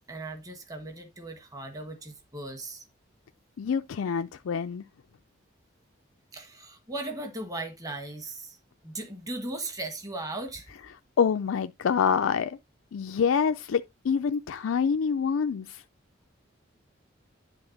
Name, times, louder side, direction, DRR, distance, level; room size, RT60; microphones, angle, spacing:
voice 1, 0.1-2.8 6.3-8.6 8.8-10.7, right 2 dB, 20° right, 1.3 m, -37 dB
voice 2, 3.6-4.8 11.2-12.6 12.9-15.8, left 6 dB, 90° left, 0.4 m, -26 dB
9.9 x 3.4 x 5.8 m
head